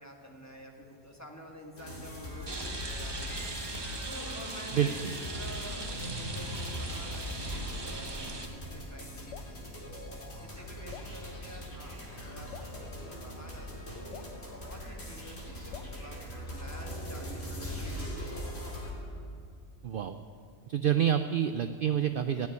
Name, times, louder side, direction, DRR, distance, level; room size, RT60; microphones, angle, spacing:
voice 1, 0.0-3.5 4.0-10.0 10.4-19.0, equal, 15° left, 1 dB, 1.6 m, -49 dB
sound 1, 1.8-18.9, equal, 60° left, 3.1 m, -40 dB
Rain, 2.5-8.4, right 2 dB, 25° right, 0.9 m, -40 dB
voice 2, 4.7-5.1 19.8-20.2 20.7-22.5, right 9 dB, 60° right, 9 dB, 0.6 m, -28 dB
Drip, 9.3-9.6 10.9-11.2 12.5-12.8 14.1-14.4 15.7-16.0, left 9 dB, 85° left, 1.0 m, -47 dB
14.0 x 9.6 x 9.6 m, 2.5 s
omnidirectional pair, 1.2 m